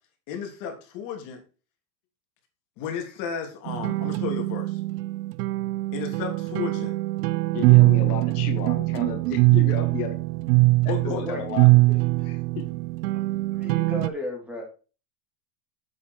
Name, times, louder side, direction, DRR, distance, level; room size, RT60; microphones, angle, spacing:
voice 1, 0.3-1.4 2.8-4.8 5.9-6.9 10.9-11.2, left 7 dB, 40° left, 3 dB, 3.1 m, -33 dB
sound 1, 3.7-14.1, right 21 dB, 70° right, 0.8 m, -22 dB
voice 2, 7.5-10.2 10.8-11.7 12.2-12.7, left 8 dB, 65° left, 6 dB, 2.0 m, -33 dB
voice 3, 11.1-11.4 11.9-12.0 13.1-13.3 13.5-14.6, left 1 dB, 5° right, 0 dB, 2.7 m, -35 dB
8.4 x 8.0 x 4.7 m, 0.35 s
supercardioid pair, 170°, 50 cm